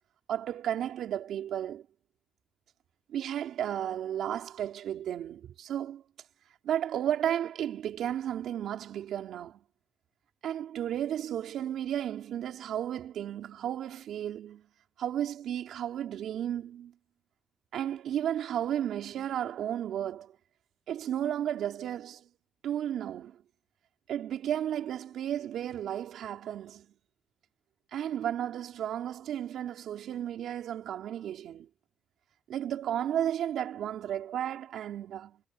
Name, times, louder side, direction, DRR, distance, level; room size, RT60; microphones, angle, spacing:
voice 1, 0.3-1.9 3.1-6.1 6.6-9.6 10.4-14.7 15.0-16.9 17.7-20.4 20.9-22.3 22.6-23.4 24.1-26.9 27.9-31.7 32.5-35.4, right 10 dB, 80° right, 4.7 m, -33 dB
cardioid pair, 110°, 0 cm